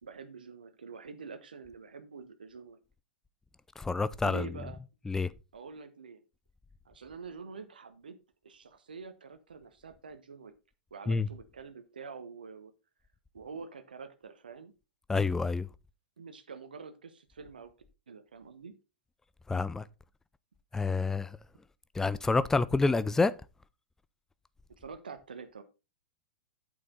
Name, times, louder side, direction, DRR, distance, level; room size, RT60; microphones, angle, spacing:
voice 1, 0.0-2.8 4.2-4.8 5.5-6.2 6.8-8.2 8.4-10.5 10.9-12.7 13.3-14.7 16.2-17.7 18.1-18.7 24.8-25.6, right 5 dB, 70° right, 1.2 m, -46 dB
voice 2, 3.8-4.5 5.1-5.3 11.1-11.3 15.1-15.7 19.5-19.8 20.7-21.3 22.0-23.3, left 3 dB, 10° left, 0.5 m, -28 dB
8.7 x 6.9 x 3.9 m
figure-of-eight pair, 95°, 5 cm